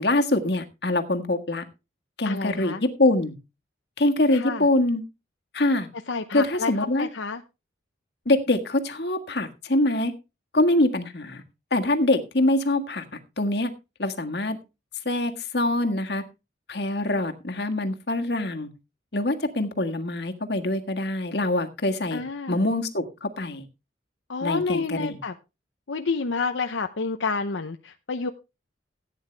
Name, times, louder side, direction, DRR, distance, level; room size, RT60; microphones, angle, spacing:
voice 1, 0.0-1.6 2.2-3.3 4.0-5.0 5.5-5.9 6.3-7.1 8.2-10.1 10.5-11.4 11.7-13.0 13.4-13.7 14.0-14.6 15.0-16.2 16.7-18.7 19.1-22.2 22.5-23.7 24.4-25.2, left 2 dB, 60° left, 5 dB, 1.6 m, -24 dB
voice 2, 2.2-2.8 4.3-4.7 6.1-7.4 22.1-22.6 24.3-25.3 25.9-28.3, left 4 dB, 80° left, 7 dB, 0.8 m, -29 dB
15.5 x 9.3 x 3.3 m, 0.27 s
head